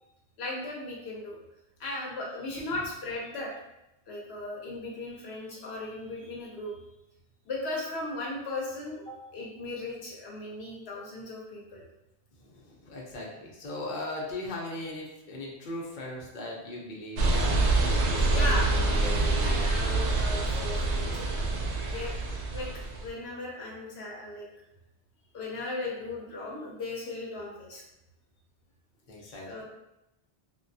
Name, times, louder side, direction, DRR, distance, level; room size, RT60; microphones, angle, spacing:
voice 1, 0.4-1.4 1.8-3.5 4.1-6.8 7.4-11.8 18.3-18.8 19.4-21.5 21.9-22.2 22.5-22.7 23.0-24.5 25.3-27.8 29.3-29.6, left 2 dB, 70° left, -3 dB, 0.9 m, -37 dB
voice 2, 12.8-17.6 18.1-19.6 19.8-20.0 29.1-29.6, left 1 dB, 50° left, -3 dB, 0.8 m, -38 dB
sound 1, 17.2-23.1, right 2 dB, 80° right, 0.9 m, -26 dB
3.4 x 2.3 x 2.6 m, 0.90 s
omnidirectional pair, 1.1 m